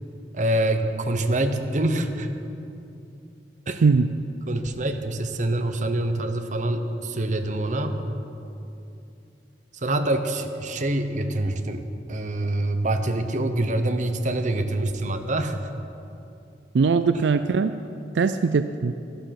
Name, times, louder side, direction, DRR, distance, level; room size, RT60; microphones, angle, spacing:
voice 1, 0.3-2.3 3.7-3.8 4.5-8.1 9.7-15.6, right 1 dB, 45° right, 7 dB, 0.9 m, -25 dB
voice 2, 3.8-4.1 16.7-17.7 18.1-18.9, right 4 dB, 75° right, 10 dB, 0.4 m, -20 dB
12.5 x 12.0 x 5.8 m, 2.7 s
head